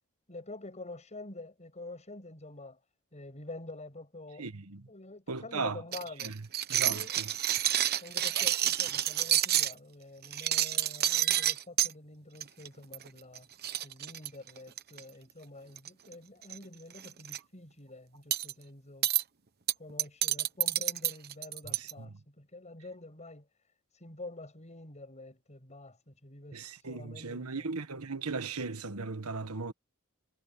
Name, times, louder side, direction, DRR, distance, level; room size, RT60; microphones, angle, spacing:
voice 1, 0.3-2.8 3.1-4.5 4.9-6.4 6.9-7.1 8.0-13.5 13.8-19.1 19.8-23.5 24.0-26.6 26.9-27.7, left 2 dB, 30° left, 7.1 m, -47 dB
voice 2, 4.4-4.9 5.3-5.8 6.2-6.4 6.7-7.3 21.6-22.1 26.5-29.7, right 4 dB, 85° right, 1.4 m, -37 dB
sound 1, 5.9-9.7 10.2-11.9 12.4-12.7 12.9-13.1 13.3-13.4 13.6-15.0 15.8-16.1 16.4-16.6 17.0-17.4 18.3-18.5 19.0-19.2 19.7-21.9, right 12 dB, 45° right, 1.1 m, -29 dB
head